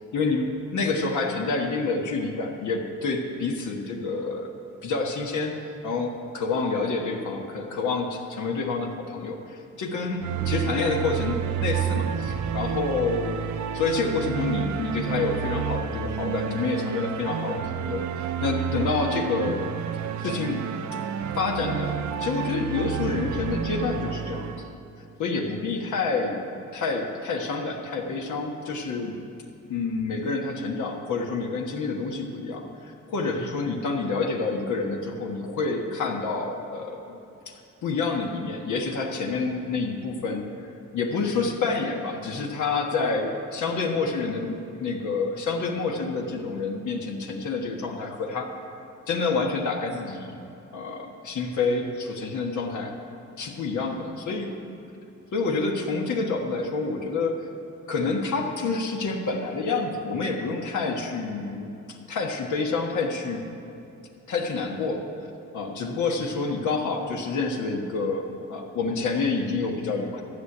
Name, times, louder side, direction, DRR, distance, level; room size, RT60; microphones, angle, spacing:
voice 1, 0.1-0.5 0.7-4.5 4.8-13.4 13.7-19.6 20.2-20.7 21.3-24.7 25.2-26.5 26.7-29.2 29.7-37.2 37.5-40.5 40.9-48.6 49.1-50.4 50.7-52.9 53.4-54.5 55.3-57.5 57.9-63.4 64.3-65.0 65.5-70.2, left 4 dB, 85° left, 0 dB, 1.4 m, -28 dB
sound 1, 10.2-24.7, right 8 dB, 75° right, 0.7 m, -30 dB
12.5 x 6.5 x 9.9 m, 2.9 s
cardioid pair, 105°, 29 cm